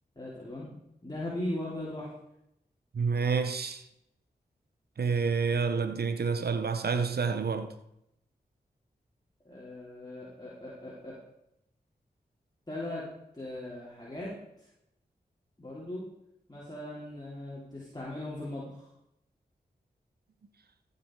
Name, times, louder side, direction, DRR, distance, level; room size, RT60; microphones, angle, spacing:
voice 1, 0.2-0.7 1.0-2.1 9.5-11.2 12.7-13.1 13.3-14.7 15.6-16.0 16.5-18.9, left 1 dB, 25° left, 3.7 m, -39 dB
voice 2, 2.9-3.8 5.0-7.7, right 5 dB, 65° right, 0.9 m, -28 dB
14.5 x 7.0 x 4.8 m
cardioid pair, 40°, 18 cm